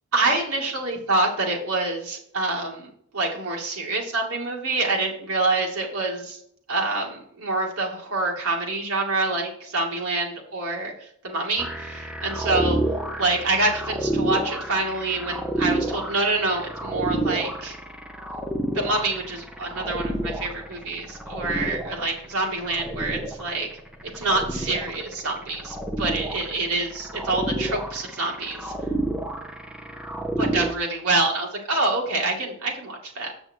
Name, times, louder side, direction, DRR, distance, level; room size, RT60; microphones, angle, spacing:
voice 1, 0.1-6.4 6.7-12.8 13.2-17.8 18.7-23.7 24.1-28.7 30.4-33.3, right 2 dB, 75° right, -1 dB, 2.6 m, -26 dB
sound 1, 11.6-30.7, right 1 dB, 5° right, 0.8 m, -30 dB
7.9 x 6.3 x 4.6 m, 0.67 s
head